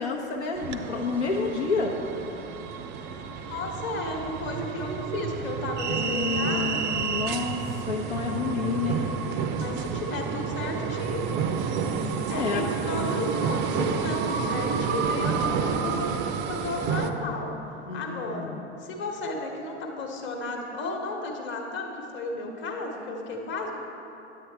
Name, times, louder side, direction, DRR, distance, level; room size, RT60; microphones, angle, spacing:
voice 1, 0.0-1.9 6.0-9.1 12.3-12.6 17.9-18.6, left 4 dB, 70° left, -1 dB, 0.8 m, -29 dB
sound 1, 0.6-17.1, right 6 dB, 30° right, 0.5 m, -30 dB
voice 2, 3.5-6.8 9.5-11.2 12.3-16.1 16.5-17.5 17.9-18.5 18.8-23.7, left 2 dB, 30° left, 1 dB, 1.1 m, -33 dB
9.4 x 8.5 x 3.4 m, 2.9 s
figure-of-eight pair, 85°, 35 cm